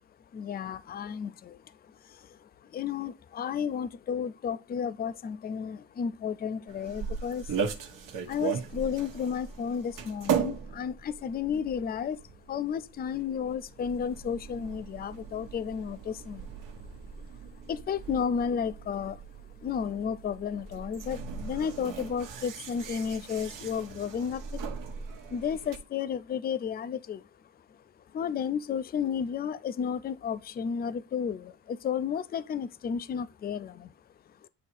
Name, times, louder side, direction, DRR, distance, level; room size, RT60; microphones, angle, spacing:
voice 1, 0.3-1.6 2.1-7.5 8.3-12.2 12.5-16.5 17.7-19.2 19.6-24.6 25.3-27.2 28.1-33.9, left 7 dB, 30° left, 0.4 m, -32 dB
sound 1, 6.7-25.8, right 7 dB, 65° right, 1.2 m, -38 dB
8.3 x 2.8 x 4.4 m
cardioid pair, 120°, 35 cm